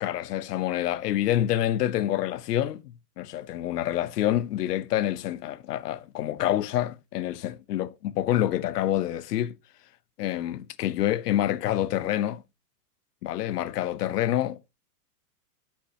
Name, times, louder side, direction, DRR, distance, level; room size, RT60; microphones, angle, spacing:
voice 1, 0.0-9.6 10.2-12.4 13.2-14.7, left 12 dB, 80° left, 0.9 m, -27 dB
10.0 x 6.1 x 2.8 m
supercardioid pair, 175°, 47 cm